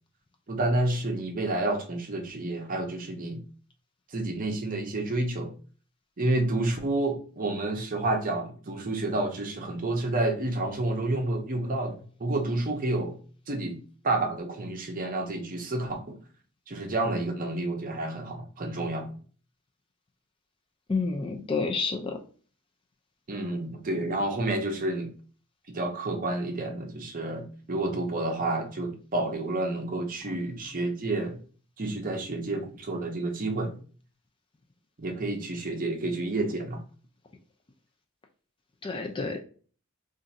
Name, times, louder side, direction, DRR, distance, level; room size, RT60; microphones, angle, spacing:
voice 1, 0.5-3.4 4.1-5.5 6.2-13.2 13.5-13.8 14.0-16.2 16.7-19.2 23.3-25.1 25.7-31.4 31.8-33.7 35.0-36.8, right 2 dB, 40° right, 4 dB, 0.6 m, -29 dB
voice 2, 20.9-22.2 38.8-39.4, left 4 dB, 25° left, 4 dB, 0.3 m, -29 dB
2.5 x 2.5 x 4.0 m, 0.41 s
head